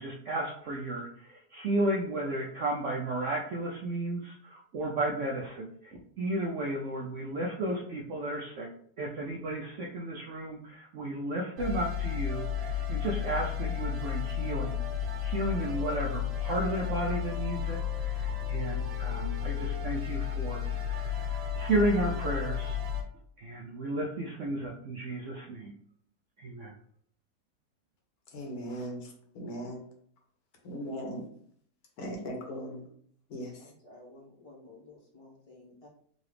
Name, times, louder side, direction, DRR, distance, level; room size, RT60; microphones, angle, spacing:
voice 1, 0.0-8.7 9.0-14.8 15.2-22.8 23.4-25.7 26.4-26.7, right 1 dB, 70° right, -2 dB, 0.7 m, -33 dB
sound 1, 11.6-23.0, left 8 dB, 85° right, 1.3 m, -33 dB
voice 2, 28.3-29.1 29.3-29.8 30.6-31.2 32.0-32.9 33.3-33.5, equal, 70° left, 1 dB, 1.3 m, -38 dB
voice 3, 33.6-35.9, left 2 dB, 30° left, -4 dB, 0.7 m, -53 dB
3.8 x 2.4 x 3.2 m, 0.63 s
omnidirectional pair, 1.8 m